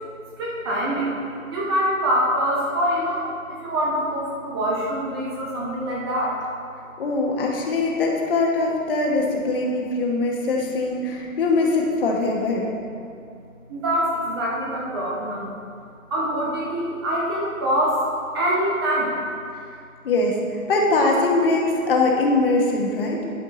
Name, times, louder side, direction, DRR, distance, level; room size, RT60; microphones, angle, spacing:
voice 1, 0.4-1.1 1.5-3.3 3.6-6.3 13.7-15.5 16.1-18.0 18.3-19.1, equal, 20° right, -4 dB, 0.8 m, -24 dB
voice 2, 7.0-12.7 20.0-20.4 20.7-23.2, left 2 dB, 40° left, -1 dB, 1.3 m, -22 dB
12.0 x 5.1 x 4.0 m, 2.4 s
figure-of-eight pair, 130°, 42 cm